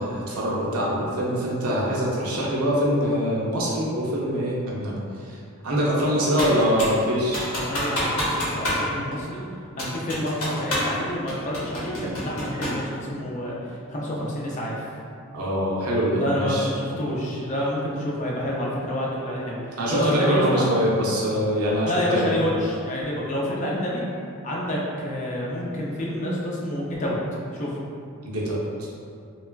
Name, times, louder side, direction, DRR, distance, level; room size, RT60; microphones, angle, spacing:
voice 1, 0.0-5.0 5.3-5.4 5.6-7.5 15.3-16.7 19.8-22.3 28.2-28.6, equal, 90° right, -5 dB, 0.6 m, -24 dB
voice 2, 6.3-6.7 7.5-9.4 9.8-14.7 16.1-20.7 21.8-24.0 24.4-27.2 27.5-27.7, left 1 dB, 35° left, -4 dB, 0.4 m, -28 dB
Computer keyboard, 6.4-7.0 7.3-8.9 9.1-9.2 9.8-11.0 11.3-12.8, equal, 70° left, 0.9 m, -27 dB
3.1 x 2.3 x 2.2 m, 2.4 s
head